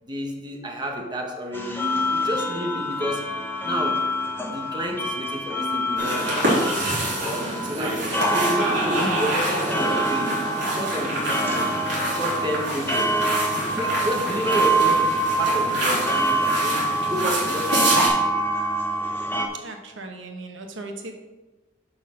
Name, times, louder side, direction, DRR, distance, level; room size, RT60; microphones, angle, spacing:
voice 1, 0.0-6.7 7.2-11.8 12.1-13.2 13.5-18.2, equal, 25° right, 1 dB, 1.2 m, -31 dB
sound 1, 1.5-19.5, right 1 dB, 10° left, 0.9 m, -26 dB
sound 2, 6.0-18.1, right 1 dB, 65° right, 3.1 m, -27 dB
voice 2, 19.5-21.1, right 2 dB, 85° right, 4 dB, 1.1 m, -37 dB
6.4 x 5.9 x 6.4 m, 1.2 s
head